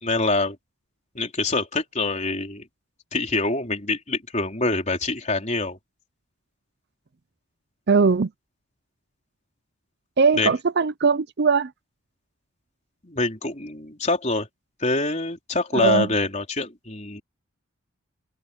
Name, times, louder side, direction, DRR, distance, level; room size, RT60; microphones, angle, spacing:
voice 1, 0.0-0.6 1.1-2.6 3.1-5.8 10.4-10.5 13.0-14.5 14.8-17.2, left 2 dB, 30° left, 4.2 m, -25 dB
voice 2, 7.9-8.3 10.2-11.7 15.7-16.1, right 5 dB, 50° right, 0.5 m, -20 dB
head